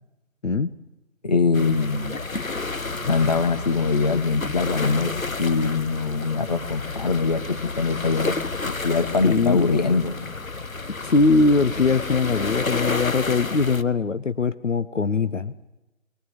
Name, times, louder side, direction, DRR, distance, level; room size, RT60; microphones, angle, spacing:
voice 1, 1.2-2.2 3.0-8.4 8.7-10.1, left 4 dB, 30° left, 8 dB, 1.2 m, -23 dB
sound 1, 1.5-13.8, left 3 dB, 85° left, 1.2 m, -31 dB
sound 2, 2.9-4.1 4.4-5.7 6.0-7.3 7.9-8.0 8.8-9.6, left 1 dB, 10° left, 1.8 m, -45 dB
voice 2, 9.2-9.7 10.9-15.6, left 4 dB, 65° left, 13 dB, 0.9 m, -21 dB
21.0 x 19.5 x 9.1 m, 0.98 s
figure-of-eight pair, 155°, 40 cm